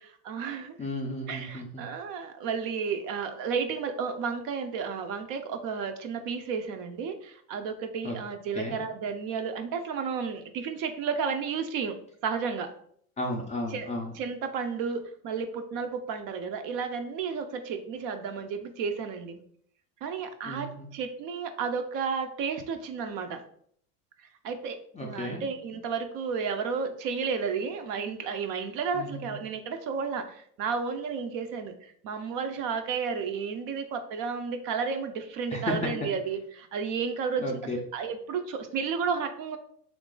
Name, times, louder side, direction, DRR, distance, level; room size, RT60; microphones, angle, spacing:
voice 1, 0.0-0.8 1.3-12.0 12.2-12.7 13.7-13.9 14.1-19.4 20.0-23.4 24.4-39.6, right 5 dB, 45° right, 7 dB, 0.5 m, -32 dB
voice 2, 0.8-1.8 8.0-8.2 8.6-8.8 13.2-14.1 20.4-20.9 24.9-25.4 28.9-29.4 35.5-35.8 37.4-37.8, left 1 dB, 15° left, -1 dB, 0.4 m, -34 dB
3.0 x 2.5 x 3.7 m, 0.65 s
hypercardioid pair, 90°, 48 cm